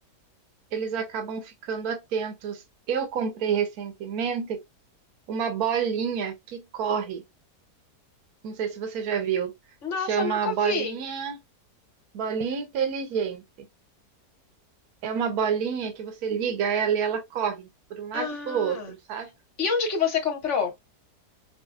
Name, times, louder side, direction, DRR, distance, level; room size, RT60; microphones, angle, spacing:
voice 1, 0.7-4.6 5.3-7.2 8.4-9.5 10.0-11.4 12.1-13.4 15.0-19.3, right 7 dB, 65° right, 1.3 m, -28 dB
voice 2, 9.8-11.0 18.1-18.9 19.6-20.7, left 5 dB, 50° left, 1.2 m, -27 dB
4.9 x 2.2 x 2.5 m
omnidirectional pair, 1.7 m